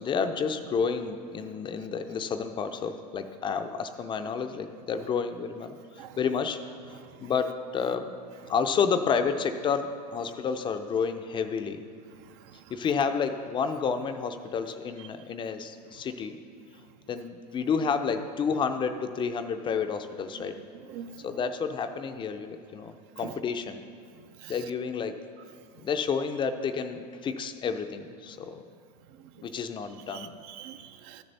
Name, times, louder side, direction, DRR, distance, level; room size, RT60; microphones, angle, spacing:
voice 1, 0.0-6.6 6.9-8.1 8.5-11.8 12.7-16.4 17.1-20.6 21.2-23.8 24.5-25.2 25.8-28.6 29.4-30.3, left 6 dB, 25° left, 8 dB, 0.5 m, -30 dB
voice 2, 30.1-31.2, right 10 dB, 50° right, 11 dB, 0.5 m, -44 dB
13.5 x 6.8 x 4.1 m, 2.2 s
hypercardioid pair, 115°, 21 cm